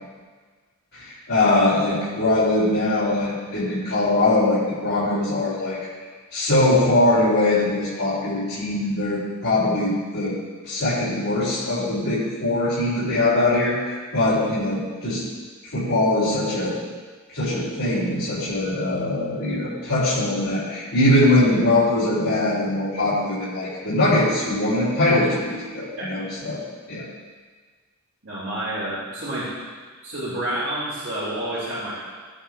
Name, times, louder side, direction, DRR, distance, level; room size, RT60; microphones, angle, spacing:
voice 1, 0.9-5.8 6.3-10.3 10.6-13.8 14.1-15.2 15.7-16.8 17.3-26.6 26.9-27.1, left 2 dB, 90° left, -12 dB, 3.2 m, -21 dB
voice 2, 28.2-29.5 30.0-31.9, right 1 dB, 60° right, -11 dB, 2.9 m, -29 dB
15.5 x 8.8 x 2.5 m, 1.5 s
head